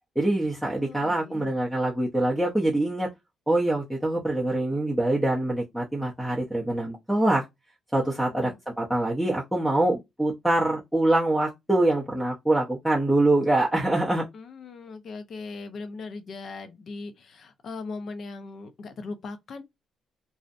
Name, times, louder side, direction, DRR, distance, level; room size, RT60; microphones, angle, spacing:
voice 1, 0.2-3.1 3.5-7.4 7.9-14.2, right 1 dB, ahead, 0.6 m, -24 dB
voice 2, 0.8-1.5 8.0-8.6 14.3-19.6, left 3 dB, 55° left, 0.6 m, -39 dB
2.6 x 2.1 x 2.4 m
cardioid pair, 90°, 0 cm